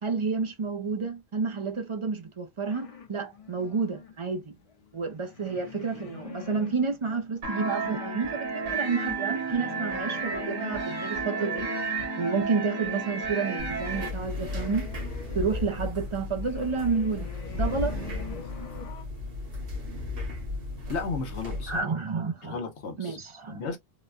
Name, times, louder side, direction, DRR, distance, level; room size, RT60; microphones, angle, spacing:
voice 1, 0.0-4.5 4.9-11.7 12.2-14.9 15.3-17.3 17.6-18.0 21.7-22.6 23.0-23.6, right 4 dB, 40° right, 0.4 m, -30 dB
sound 1, 2.7-7.1 7.8-19.0, left 6 dB, 40° left, 0.6 m, -44 dB
sound 2, 7.4-14.1, right 4 dB, 75° right, 2.1 m, -32 dB
sound 3, 13.6-21.8, left 2 dB, 60° right, 1.4 m, -35 dB
voice 2, 20.9-21.9 22.4-23.2 23.5-23.8, left 4 dB, 80° left, 1.1 m, -34 dB
3.9 x 2.1 x 2.4 m
omnidirectional pair, 1.1 m